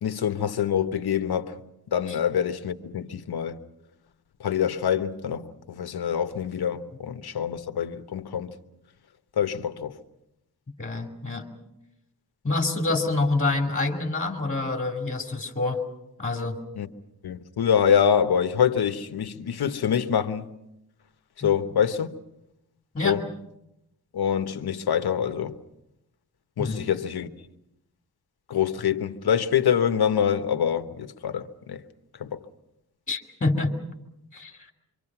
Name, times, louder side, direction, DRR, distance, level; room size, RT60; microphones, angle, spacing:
voice 1, 0.0-1.6 1.9-3.6 4.4-8.6 9.4-10.0 16.8-16.9 17.2-20.5 21.4-22.1 23.0-23.2 24.1-25.6 26.6-27.3 28.5-31.8 32.2-32.5, left 8 dB, 80° left, 1.2 m, -25 dB
voice 2, 10.8-11.5 12.4-15.8 16.2-16.6 21.4-21.5 22.9-23.2 26.6-26.8 33.1-33.7 34.3-34.6, left 2 dB, 20° left, 2.4 m, -27 dB
26.5 x 25.0 x 6.0 m
wide cardioid pair, 160°, 37 cm